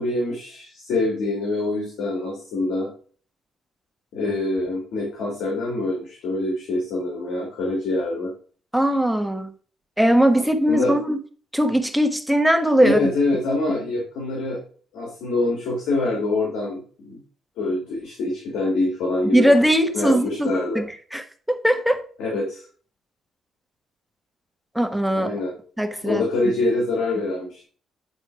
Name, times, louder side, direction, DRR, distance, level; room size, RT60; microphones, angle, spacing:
voice 1, 0.0-2.9 4.1-8.3 10.7-10.9 12.8-14.6 14.9-17.2 17.6-19.5 19.9-20.8 22.2-22.6 25.2-25.5 26.0-27.6, left 2 dB, 85° left, -2 dB, 2.6 m, -25 dB
voice 2, 8.7-9.5 10.0-11.2 11.5-13.0 19.3-22.0 24.7-25.3 25.8-26.2, equal, ahead, 6 dB, 1.3 m, -20 dB
9.3 x 4.5 x 4.8 m, 0.43 s
cardioid pair, 90°, 0 cm